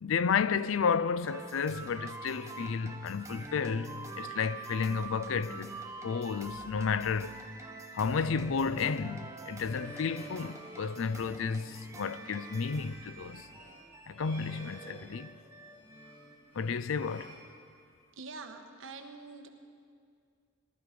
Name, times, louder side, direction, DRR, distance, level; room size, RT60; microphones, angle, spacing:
voice 1, 0.0-5.7 6.0-7.3 7.9-13.5 14.1-15.3 16.5-17.3, left 5 dB, 70° left, 0.5 m, -32 dB
sound 1, 1.3-16.4, right 2 dB, 15° right, 1.1 m, -45 dB
sound 2, 9.1-18.1, right 1 dB, 30° left, 2.8 m, -53 dB
voice 2, 18.2-19.5, right 4 dB, 70° right, 1.1 m, -45 dB
18.0 x 13.0 x 5.1 m
head